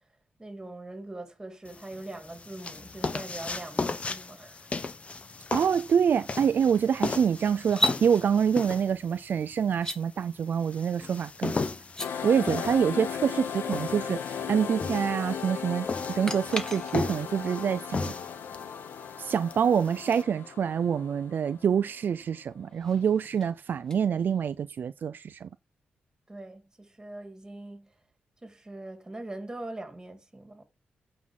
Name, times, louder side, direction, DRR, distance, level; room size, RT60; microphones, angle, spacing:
voice 1, 0.4-4.7 26.3-27.9 28.4-30.6, right 2 dB, 15° right, 2.8 m, -42 dB
sound 1, 1.7-20.2, left 4 dB, 35° left, 0.9 m, -36 dB
voice 2, 5.5-11.6 12.2-18.1 19.2-25.5, right 7 dB, 60° right, 0.5 m, -26 dB
sound 2, 7.6-8.0 9.7-10.0 11.8-12.1 16.2-17.3 20.5-20.6 22.5-24.7, equal, 15° left, 1.3 m, -34 dB
sound 3, 12.0-22.3, left 7 dB, 85° left, 1.1 m, -37 dB
8.5 x 5.6 x 7.4 m
wide cardioid pair, 110°, 4 cm